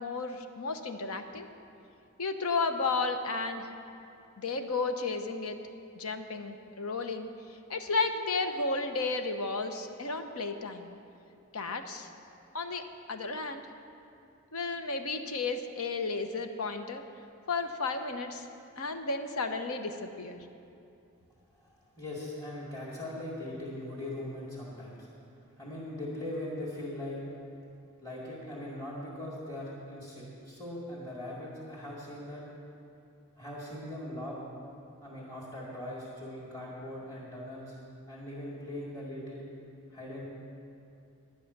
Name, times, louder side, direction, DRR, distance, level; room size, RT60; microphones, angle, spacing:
voice 1, 0.0-1.5 2.2-3.7 4.4-5.6 5.9-7.3 7.7-10.9 11.5-12.1 12.5-13.6 14.5-17.0 17.5-18.5 18.8-20.4, left 3 dB, 85° left, 7 dB, 0.9 m, -33 dB
voice 2, 22.0-25.1 25.6-27.2 28.0-32.4 33.4-34.4 35.0-37.8 38.1-39.5 39.9-40.2, left 1 dB, 20° left, -8 dB, 2.2 m, -40 dB
11.0 x 10.0 x 6.6 m, 2.6 s
head